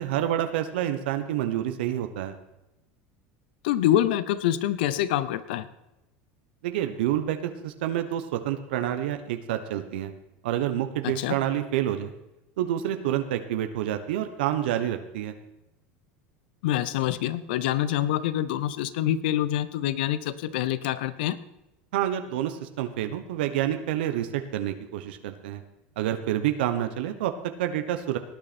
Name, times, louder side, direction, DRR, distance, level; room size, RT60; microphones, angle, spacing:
voice 1, 0.0-2.3 6.6-10.1 10.4-12.1 12.6-15.3 21.9-25.6 26.0-27.3 27.6-28.2, right 11 dB, 85° right, 8 dB, 1.1 m, -28 dB
voice 2, 3.6-5.7 11.0-11.4 16.6-21.4, left 12 dB, 85° left, 16 dB, 0.8 m, -26 dB
19.0 x 8.9 x 4.4 m, 0.94 s
supercardioid pair, 125°, 5 cm